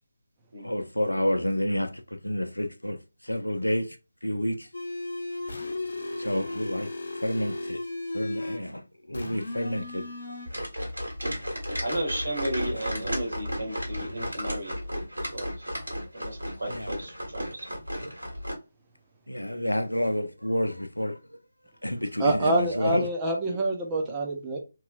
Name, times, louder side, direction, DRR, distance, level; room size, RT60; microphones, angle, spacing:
voice 1, 0.6-1.9 2.2-3.0 3.2-4.0 4.2-4.7 6.2-6.9 7.2-7.8 8.1-10.1 12.8-13.2 13.9-14.3 16.7-16.9 19.3-21.2 21.8-23.1, equal, 85° left, 0.5 m, -29 dB
sound 1, 4.7-8.7 9.1-10.5, left 2 dB, 65° left, 0.9 m, -35 dB
sound 2, 10.5-18.5, equal, 75° right, 1.5 m, -34 dB
voice 2, 11.8-15.5 16.1-17.8 23.4-23.6, right 1 dB, 60° right, 1.6 m, -34 dB
voice 3, 22.2-24.6, right 2 dB, 15° right, 0.6 m, -26 dB
3.0 x 2.9 x 2.3 m
figure-of-eight pair, 155°, 0 cm